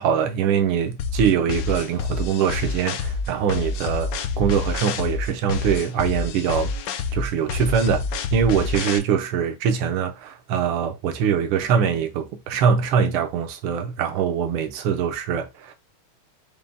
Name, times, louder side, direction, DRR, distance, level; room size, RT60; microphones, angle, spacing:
voice 1, 0.0-6.7 7.1-8.1 8.3-15.7, right 7 dB, 80° right, 1.7 m, -23 dB
sound 1, 1.0-9.0, left 4 dB, 75° left, 1.0 m, -28 dB
5.3 x 2.3 x 3.4 m
omnidirectional pair, 2.4 m